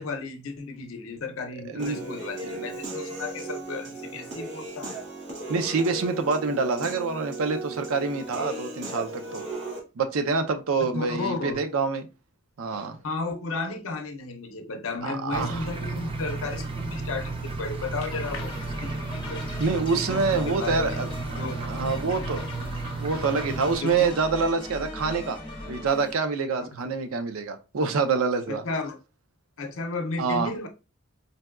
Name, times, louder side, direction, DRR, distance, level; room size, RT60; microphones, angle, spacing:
voice 1, 0.0-5.0 10.8-11.6 13.0-19.5 19.9-20.2 20.5-21.0 21.3-21.6 23.7-24.0 26.7-26.8 28.5-29.0 29.6-30.7, left 3 dB, 80° left, 0.6 m, -34 dB
voice 2, 1.7-2.0 2.4-2.7 5.5-9.4 10.0-12.1 12.6-13.0 15.0-15.7 19.6-21.1 21.5-22.4 23.0-25.4 25.7-28.6 30.2-30.5, right 4 dB, 90° right, 0.5 m, -26 dB
Human voice / Piano, 1.8-9.8, right 2 dB, 55° right, 0.8 m, -36 dB
sound 1, 15.3-23.8, right 3 dB, 25° right, 0.3 m, -33 dB
sound 2, 18.1-26.1, left 2 dB, 25° left, 0.7 m, -38 dB
4.0 x 2.2 x 2.3 m
head